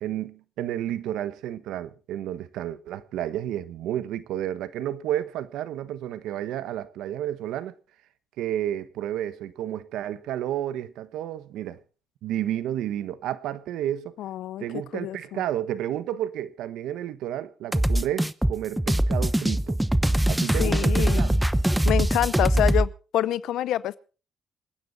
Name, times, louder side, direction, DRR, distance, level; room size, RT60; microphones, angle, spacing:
voice 1, 0.0-7.7 8.4-11.8 12.2-14.2 14.6-19.8 20.3-21.3, right 11 dB, 90° right, 1.1 m, -31 dB
voice 2, 14.2-14.6 14.9-15.4 20.6-21.4 21.8-24.0, left 13 dB, 80° left, 0.6 m, -27 dB
sound 1, 17.7-22.9, right 1 dB, 5° right, 0.9 m, -22 dB
27.0 x 9.9 x 4.0 m
cardioid pair, 90°, 0 cm